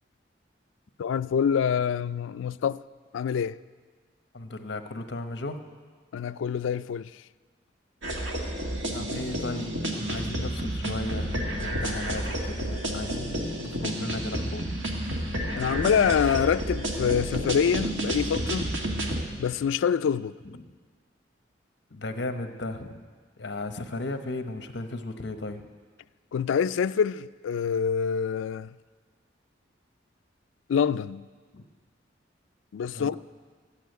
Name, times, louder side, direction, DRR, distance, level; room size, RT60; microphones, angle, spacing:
voice 1, 1.0-2.8 3.1-3.5 6.1-7.1 15.5-18.7 19.4-20.3 26.3-28.7 30.7-31.2 32.7-33.2, left 7 dB, 85° left, 0.3 m, -26 dB
voice 2, 4.3-5.6 8.9-14.6 20.4-20.6 21.9-23.0 23.4-25.6 31.5-31.6 32.9-33.2, left 2 dB, 60° left, 1.0 m, -35 dB
sound 1, 8.0-19.2, right 1 dB, 75° right, 1.8 m, -30 dB
13.0 x 8.4 x 9.3 m
head